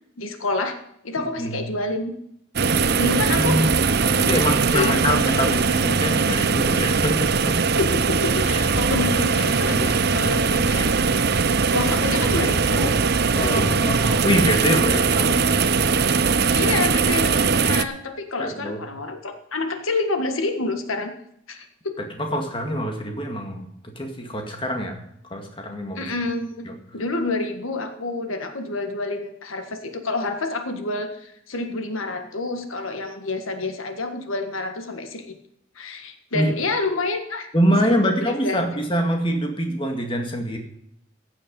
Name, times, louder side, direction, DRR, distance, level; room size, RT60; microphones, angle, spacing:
voice 1, 0.2-0.8 1.0-2.2 3.0-3.6 4.0-5.0 7.8-10.9 11.7-12.9 13.3-13.8 14.9-15.4 16.5-21.1 21.5-21.9 25.9-26.7 26.9-35.2 35.8-37.5 37.9-38.6, left 3 dB, 80° left, 6 dB, 1.6 m, -28 dB
voice 2, 1.2-1.6 3.4-3.7 4.1-7.5 9.7-10.0 13.3-15.4 18.4-18.8 22.2-25.0 25.3-26.1 36.3-36.5 37.5-40.6, equal, 25° left, 3 dB, 1.9 m, -24 dB
sound 1, 2.6-17.9, right 5 dB, 50° right, 0.7 m, -20 dB
15.0 x 9.0 x 5.4 m, 0.75 s
head